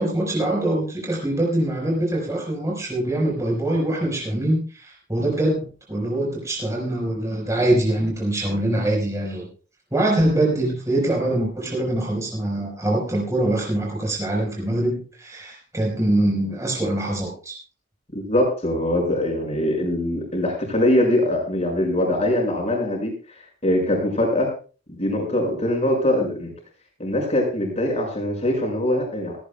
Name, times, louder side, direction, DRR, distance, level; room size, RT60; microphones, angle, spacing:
voice 1, 0.0-9.5 9.9-17.5, right 1 dB, 15° right, -2 dB, 4.6 m, -23 dB
voice 2, 18.1-24.5 25.0-26.5 27.0-29.4, left 1 dB, 30° left, 1 dB, 6.1 m, -22 dB
17.5 x 17.5 x 2.3 m, 0.37 s
head